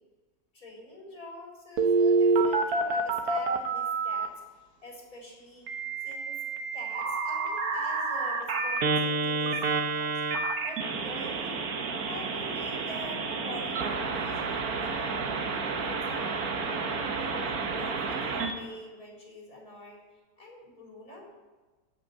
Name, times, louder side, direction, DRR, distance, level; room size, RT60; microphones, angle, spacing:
voice 1, 0.5-4.3 4.8-5.6 6.0-6.3 6.7-10.1 10.6-11.6 12.1-15.3 15.8-16.6 16.9-20.0 20.4-21.3, left 1 dB, 60° left, -2 dB, 4.5 m, -45 dB
Telephone, 1.8-4.3 5.7-18.5, right 4 dB, 65° right, 1.6 m, -29 dB
15.5 x 6.4 x 8.7 m, 1.3 s
omnidirectional pair, 1.7 m